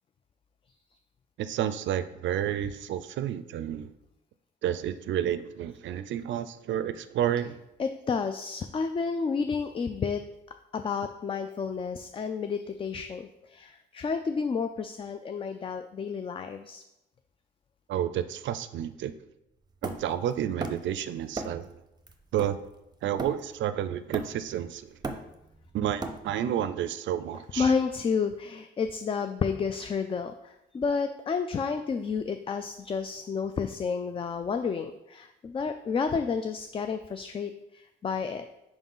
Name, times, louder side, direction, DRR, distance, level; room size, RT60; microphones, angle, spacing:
voice 1, 1.4-3.9 4.6-7.6 17.9-19.2 19.8-21.7 22.3-22.6 23.0-24.9 25.7-27.7, right 10 dB, 70° right, 13 dB, 0.4 m, -30 dB
voice 2, 7.8-10.2 10.7-16.8 27.6-38.4, left 5 dB, 25° left, 8 dB, 0.3 m, -31 dB
Hammer, 19.8-21.0 21.3-21.7 22.1-23.6 24.1-24.6 24.9-26.5, right 3 dB, 20° right, 0.7 m, -37 dB
4.8 x 3.8 x 5.4 m, 0.89 s
cardioid pair, 90°, 20 cm